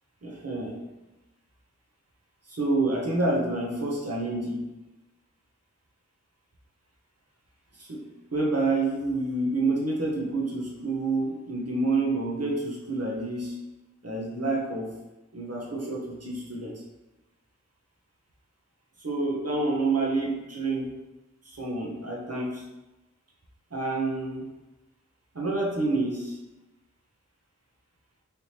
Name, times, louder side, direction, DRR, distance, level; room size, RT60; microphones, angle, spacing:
voice 1, 0.2-0.8 2.5-4.7 7.8-13.6 14.0-14.9 15.3-16.8 19.0-20.9 21.5-22.6 23.7-24.5 25.3-26.4, right 2 dB, 50° right, -3 dB, 0.9 m, -28 dB
3.4 x 3.0 x 2.9 m, 1.0 s
wide cardioid pair, 40°, 31 cm